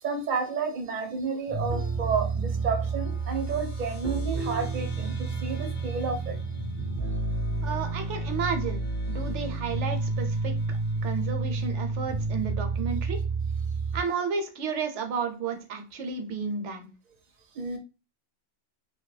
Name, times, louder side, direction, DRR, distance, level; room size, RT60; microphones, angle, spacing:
voice 1, 0.0-6.4 17.6-17.8, right 5 dB, 50° right, 3 dB, 0.7 m, -31 dB
sound 1, 1.5-12.2, left 6 dB, 55° left, 0.6 m, -44 dB
sound 2, 1.5-14.0, right 3 dB, 20° right, 0.5 m, -30 dB
voice 2, 7.6-8.8 9.1-10.8 11.0-13.2 13.9-16.9, right 5 dB, 75° right, 6 dB, 1.0 m, -32 dB
2.9 x 2.2 x 3.2 m, 0.31 s
omnidirectional pair, 1.2 m